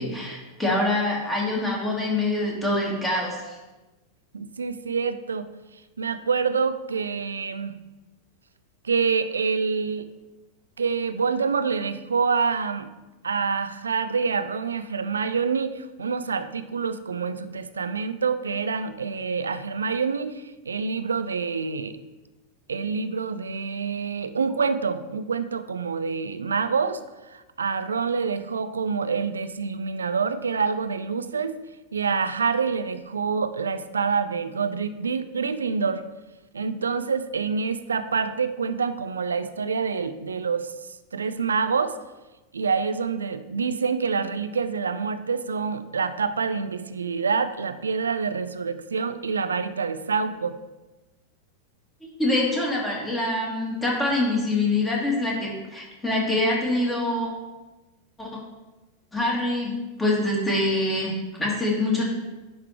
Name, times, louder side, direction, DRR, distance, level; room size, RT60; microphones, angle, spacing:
voice 1, 0.0-3.6 52.2-57.3 58.2-58.3 59.1-62.1, left 2 dB, 10° left, -3 dB, 2.2 m, -25 dB
voice 2, 4.3-5.5 6.0-7.7 8.8-10.1 10.8-12.9 13.2-22.0 22.7-27.0 27.3-31.6 31.9-36.0 36.5-40.7 41.1-42.0 42.5-50.6, right 5 dB, 70° right, 11 dB, 0.4 m, -26 dB
10.5 x 3.7 x 4.5 m, 1.1 s
figure-of-eight pair, 90°, 0 cm